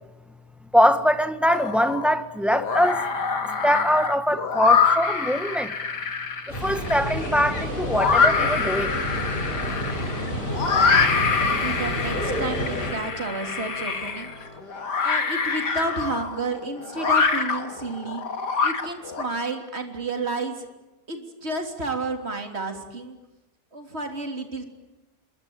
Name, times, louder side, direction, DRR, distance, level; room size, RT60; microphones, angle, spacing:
voice 1, 0.7-3.0 3.6-5.7 6.5-8.9, equal, ahead, 1.4 m, -22 dB
sound 1, 1.5-2.1 2.5-19.2, left 5 dB, 75° left, 2.8 m, -25 dB
sound 2, 6.5-12.9, equal, 30° left, 7.4 m, -29 dB
sound 3, 8.9-14.6, left 1 dB, 60° left, 5.0 m, -43 dB
voice 2, 10.7-14.3 15.0-18.2 18.6-20.7 21.1-23.2 23.7-24.6, right 3 dB, 35° right, 3.6 m, -31 dB
27.0 x 23.0 x 8.9 m
omnidirectional pair, 1.8 m